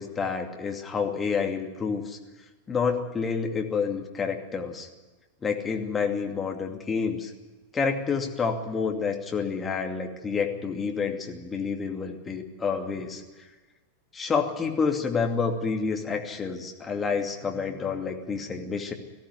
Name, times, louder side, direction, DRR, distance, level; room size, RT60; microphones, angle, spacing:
voice 1, 0.0-2.2 2.7-4.9 5.4-7.3 7.7-13.2 14.1-18.9, left 5 dB, 20° left, 2 dB, 2.6 m, -29 dB
19.5 x 15.0 x 9.7 m, 1.2 s
figure-of-eight pair, 90°, 0 cm